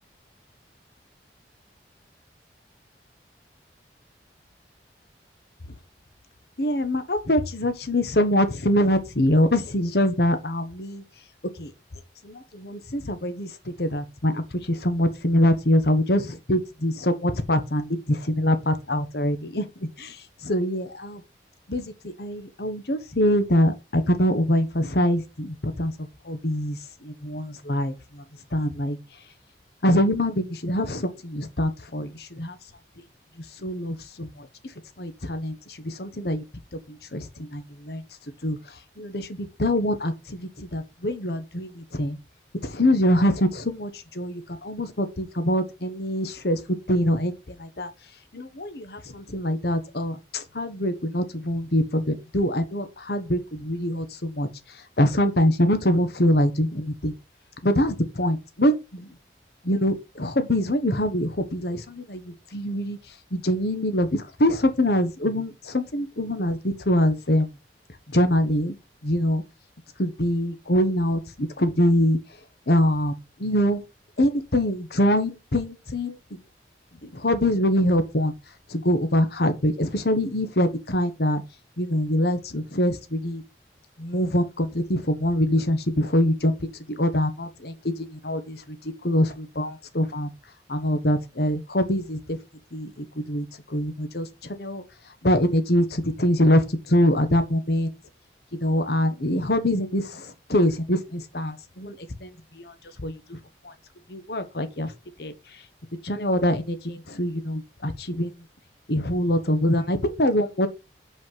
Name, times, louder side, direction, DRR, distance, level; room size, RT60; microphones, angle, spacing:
voice 1, 6.6-11.0 11.6-11.7 12.2-13.5 13.8-19.7 20.0-20.2 20.4-21.2 21.7-21.8 22.2-25.9 26.3-28.2 28.5-29.0 29.8-32.6 33.6-34.3 35.0-35.5 35.8-36.4 37.1-38.0 38.4-38.6 39.0-42.2 42.6-43.9 44.1-46.6 46.9-47.3 47.6-47.9 48.3-54.5 55.0-57.1 57.6-59.1 59.6-63.0 63.3-67.5 68.1-68.8 69.0-69.4 70.0-72.2 72.7-73.1 73.4-73.8 74.2-76.2 77.0-78.3 78.7-81.4 81.8-83.4 84.0-86.5 86.9-88.8 89.0-90.3 90.7-92.4 92.7-94.8 95.2-97.9 98.6-101.9 102.2-102.7 103.0-103.4 104.1-104.9 105.2-105.3 106.0-108.3 108.9-110.7, equal, 65° left, 1.2 m, -24 dB
5.7 x 5.5 x 5.8 m
head